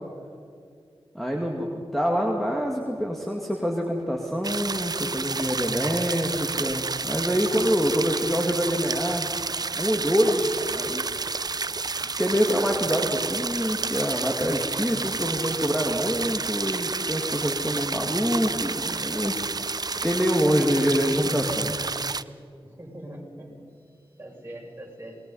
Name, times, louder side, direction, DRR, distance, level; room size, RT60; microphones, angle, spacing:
voice 1, 1.1-9.2 9.7-11.0 11.5-11.8 12.0-19.4 19.9-21.7, equal, ahead, 0 dB, 2.3 m, -26 dB
sound 1, 4.4-22.2, right 4 dB, 45° right, 0.5 m, -30 dB
voice 2, 22.6-23.5 23.8-25.2, right 1 dB, 20° right, -2 dB, 7.3 m, -43 dB
27.0 x 20.5 x 5.6 m, 2.3 s
wide cardioid pair, 75°, 10 cm